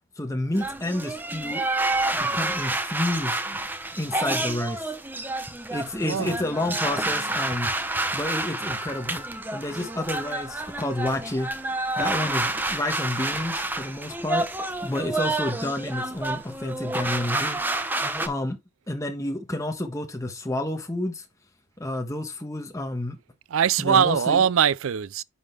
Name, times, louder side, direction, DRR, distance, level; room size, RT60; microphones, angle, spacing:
voice 1, 0.2-1.6 2.1-3.4 4.0-4.9 5.7-7.7 8.1-9.2 9.5-11.5 12.0-14.5 14.8-17.6 18.2-18.6 18.9-21.2 21.8-23.2 23.8-24.4, left 1 dB, 15° left, 1.3 m, -30 dB
sound 1, 0.5-18.3, right 2 dB, 10° right, 0.7 m, -29 dB
voice 2, 6.0-6.4 23.5-25.2, right 8 dB, 70° right, 0.4 m, -21 dB
10.0 x 3.9 x 3.4 m
head